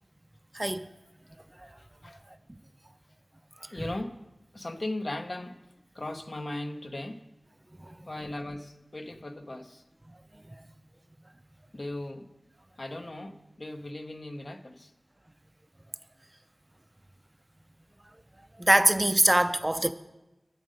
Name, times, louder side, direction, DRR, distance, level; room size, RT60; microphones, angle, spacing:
voice 1, 0.5-0.9 7.9-8.0 18.6-19.9, right 1 dB, 25° right, 0.4 m, -23 dB
voice 2, 3.7-4.2 4.5-5.6 5.9-7.3 8.1-9.8 11.7-12.3 12.8-14.9, left 1 dB, 55° left, 0.7 m, -37 dB
11.0 x 6.4 x 5.2 m
wide cardioid pair, 45°, 0 cm